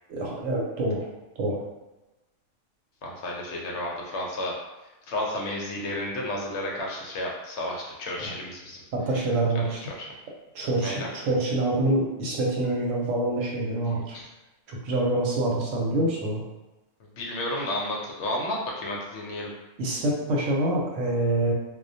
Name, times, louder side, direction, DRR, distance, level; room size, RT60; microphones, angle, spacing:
voice 1, 0.1-1.1 1.4-1.6 8.2-8.3 8.9-9.8 10.5-14.2 14.7-16.4 19.8-21.5, right 2 dB, 90° right, -2 dB, 1.0 m, -26 dB
voice 2, 3.0-4.6 5.1-8.8 9.9-10.1 10.8-11.1 14.1-14.3 17.1-19.5, left 1 dB, 70° left, -2 dB, 0.8 m, -32 dB
2.3 x 2.1 x 2.6 m, 1.1 s
omnidirectional pair, 1.3 m